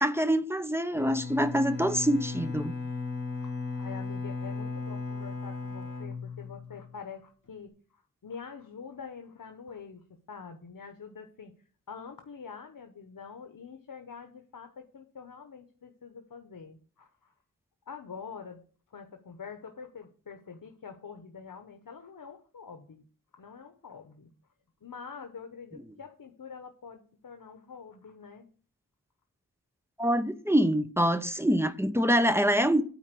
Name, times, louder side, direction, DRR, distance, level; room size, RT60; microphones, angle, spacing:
voice 1, 0.0-2.7 30.0-32.8, equal, 5° right, 0.7 m, -25 dB
Bowed string instrument, 0.9-7.0, left 4 dB, 60° left, 2.5 m, -36 dB
voice 2, 3.4-11.5 11.9-17.3 17.9-18.6 18.9-23.0 23.3-24.3 24.8-28.5, left 6 dB, 75° left, 1.0 m, -46 dB
9.3 x 4.4 x 6.8 m
wide cardioid pair, 85°, 34 cm